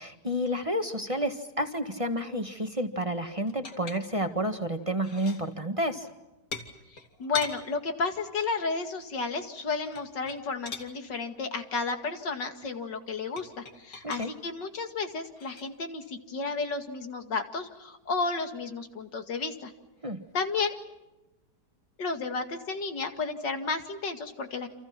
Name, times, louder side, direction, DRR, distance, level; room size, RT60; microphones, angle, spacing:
voice 1, 0.0-6.1 14.0-14.3 20.0-20.2, equal, 20° right, 6 dB, 1.5 m, -30 dB
sound 1, 3.5-4.4 4.8-5.5 6.5-7.6 9.8-10.9 13.4-14.3 15.4-15.6, left 4 dB, 55° left, 2.9 m, -40 dB
voice 2, 6.9-19.7 20.3-20.7 22.0-24.7, left 4 dB, 85° left, 6 dB, 2.9 m, -32 dB
29.5 x 27.5 x 5.9 m, 0.98 s
omnidirectional pair, 1.9 m